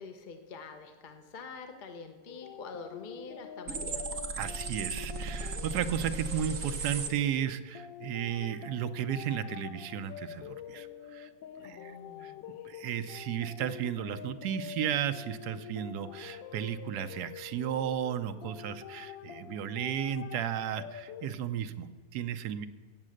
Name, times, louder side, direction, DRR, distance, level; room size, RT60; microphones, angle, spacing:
voice 1, 0.0-4.2 11.6-12.5, left 4 dB, 45° left, 6 dB, 0.6 m, -46 dB
sound 1, 2.3-21.3, left 9 dB, 85° left, 1.4 m, -46 dB
sound 2, 3.7-7.1, right 4 dB, 50° right, 1.3 m, -36 dB
voice 2, 4.4-11.3 11.6-12.3 12.6-22.7, right 9 dB, 70° right, 10 dB, 1.1 m, -34 dB
15.0 x 8.6 x 6.4 m, 1.4 s
omnidirectional pair, 2.0 m